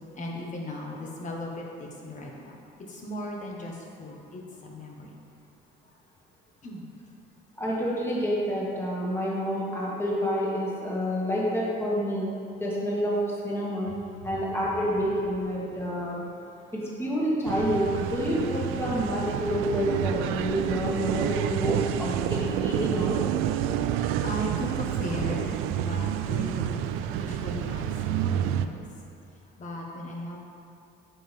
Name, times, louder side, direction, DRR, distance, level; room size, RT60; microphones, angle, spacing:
voice 1, 0.1-2.6 2.9-5.2 6.6-6.9 23.7-28.8 29.6-30.4, left 1 dB, 35° left, -1 dB, 1.5 m, -37 dB
voice 2, 7.6-12.3 12.6-13.9 14.2-16.2 16.7-23.2, equal, 10° left, -6 dB, 2.0 m, -28 dB
sound 1, 17.4-28.7, right 10 dB, 80° right, 0.4 m, -29 dB
8.6 x 7.0 x 3.5 m, 2.7 s
cardioid pair, 115°, 21 cm